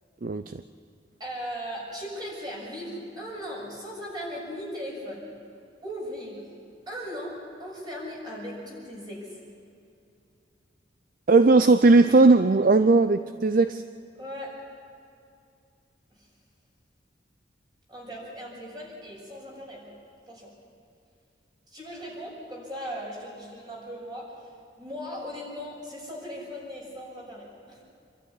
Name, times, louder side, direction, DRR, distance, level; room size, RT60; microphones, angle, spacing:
voice 1, 0.2-0.6 11.3-13.8, right 3 dB, 50° right, 11 dB, 0.5 m, -18 dB
voice 2, 1.2-5.3 5.8-6.5 6.9-9.4 14.2-14.6 16.1-16.3 17.9-20.0 20.3-20.5 21.7-24.5 24.8-27.8, equal, 25° right, -3 dB, 6.5 m, -38 dB
27.0 x 12.5 x 9.7 m, 2.5 s
head